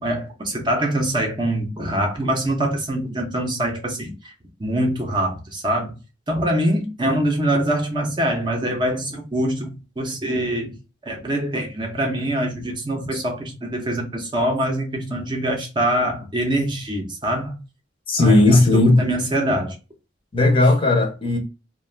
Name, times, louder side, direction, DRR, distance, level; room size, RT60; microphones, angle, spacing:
voice 1, 0.0-4.3 4.6-5.9 6.3-9.7 10.0-10.7 11.0-17.5 18.2-19.8, right 1 dB, 25° right, 0.6 m, -24 dB
voice 2, 18.1-19.0 20.3-21.4, left 2 dB, 30° left, 0.6 m, -16 dB
2.4 x 2.2 x 3.2 m
head